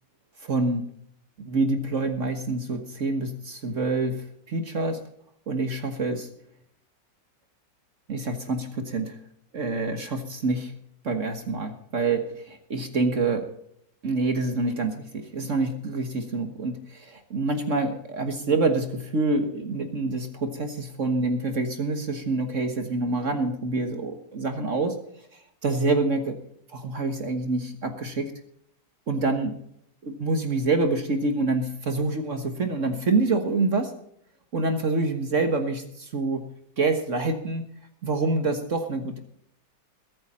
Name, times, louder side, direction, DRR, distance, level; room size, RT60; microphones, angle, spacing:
voice 1, 0.4-0.9 1.5-5.0 5.5-6.3 8.1-9.2 9.5-10.7 11.0-13.5 14.0-25.0 25.3-26.4 26.7-28.3 29.1-29.5 30.0-33.9 34.5-36.4 36.8-37.6 38.0-39.2, right 3 dB, 45° right, 7 dB, 1.6 m, -26 dB
21.5 x 8.8 x 4.3 m, 0.71 s
omnidirectional pair, 1.9 m